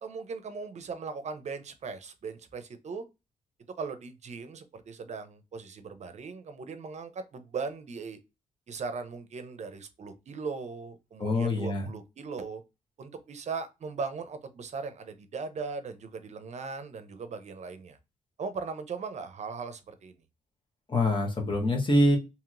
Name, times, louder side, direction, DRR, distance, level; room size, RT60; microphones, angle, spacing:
voice 1, 0.0-3.0 3.8-8.2 8.7-12.6 13.0-18.0 18.4-20.1, right 5 dB, 55° right, 0.6 m, -38 dB
voice 2, 11.2-11.9 20.9-22.2, left 1 dB, 35° left, 1.1 m, -25 dB
2.9 x 2.8 x 2.4 m
cardioid pair, 70°, 14 cm